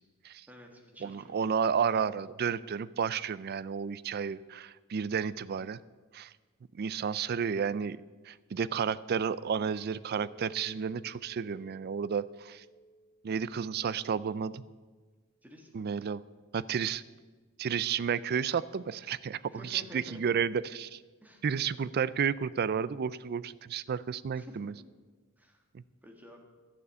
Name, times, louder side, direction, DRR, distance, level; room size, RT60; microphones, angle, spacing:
voice 1, 0.5-1.8 15.4-15.9 19.5-20.2 21.2-21.9 24.4-24.8 25.4-25.6 26.0-26.4, equal, 10° right, 2 dB, 1.7 m, -52 dB
voice 2, 1.0-5.8 6.1-6.3 6.7-8.0 8.3-12.6 13.2-14.6 15.7-16.2 16.5-17.0 17.6-21.0 21.4-24.7 25.7-25.8, right 7 dB, 50° right, 18 dB, 0.4 m, -32 dB
Chink clink, 9.8-15.0, right 2 dB, 75° right, 3.3 m, -58 dB
12.0 x 6.8 x 8.4 m, 1.4 s
head